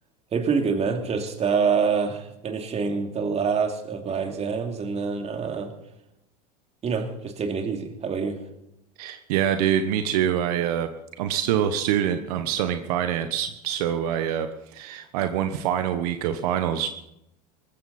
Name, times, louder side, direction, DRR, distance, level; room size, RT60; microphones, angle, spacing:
voice 1, 0.3-5.7 6.8-8.4, right 5 dB, 35° right, 5 dB, 2.8 m, -26 dB
voice 2, 9.0-10.9 11.2-16.9, right 9 dB, 70° right, 8 dB, 1.2 m, -25 dB
20.0 x 15.0 x 4.3 m, 0.83 s
hypercardioid pair, 100°, 20 cm